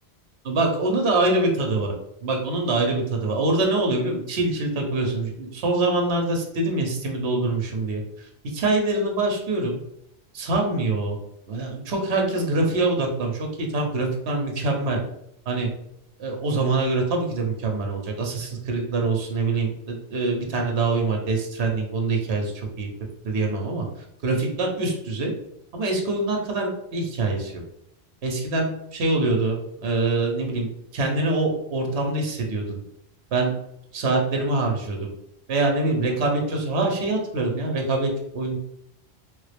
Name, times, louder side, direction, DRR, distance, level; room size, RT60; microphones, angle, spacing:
voice 1, 0.4-1.9 2.2-8.0 8.5-9.8 10.3-11.2 11.5-15.0 15.5-15.7 16.2-22.9 23.2-23.9 24.2-25.3 25.7-27.6 28.2-32.8 33.3-33.5 33.9-35.1 35.5-38.6, right 2 dB, 75° right, 2 dB, 1.0 m, -24 dB
3.2 x 2.3 x 3.3 m, 0.77 s
omnidirectional pair, 1.1 m